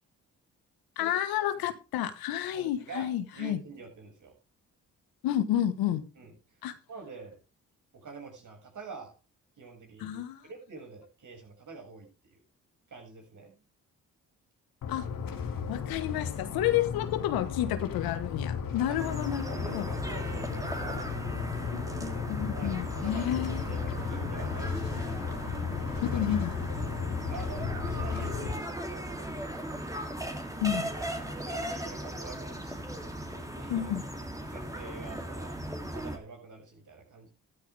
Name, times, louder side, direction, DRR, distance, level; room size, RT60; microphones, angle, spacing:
voice 1, 1.0-3.6 5.2-6.0 6.6-6.7 10.0-10.4 14.9-15.1 15.7-19.9 21.7-23.6 26.1-26.5 30.6-30.9 33.7-34.0, left 11 dB, 80° left, 1.4 m, -30 dB
voice 2, 2.5-4.3 6.2-6.6 6.9-7.4 7.9-9.1 9.6-12.4 12.9-13.6 18.9-19.0 19.4-21.4 22.5-25.4 25.9-26.2 27.3-29.5 30.6-33.9 34.4-35.6 35.9-37.3, right 4 dB, 55° right, 6.7 m, -46 dB
sound 1, 14.8-28.5, left 6 dB, 65° left, 2.3 m, -35 dB
sound 2, 19.0-36.2, right 1 dB, 10° right, 2.9 m, -37 dB
13.0 x 12.5 x 3.5 m
supercardioid pair, 55°, 36 cm